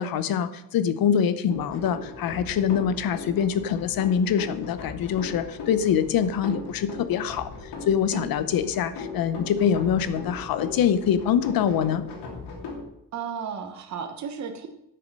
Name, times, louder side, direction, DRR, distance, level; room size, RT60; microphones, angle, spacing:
voice 1, 0.0-7.5 7.9-12.0, left 8 dB, 60° left, 13 dB, 0.9 m, -24 dB
sound 1, 1.5-12.8, left 4 dB, 75° left, 2.9 m, -38 dB
voice 2, 13.1-14.7, right 7 dB, 45° right, 5 dB, 1.2 m, -34 dB
11.5 x 6.8 x 6.7 m, 0.81 s
cardioid pair, 175°, 41 cm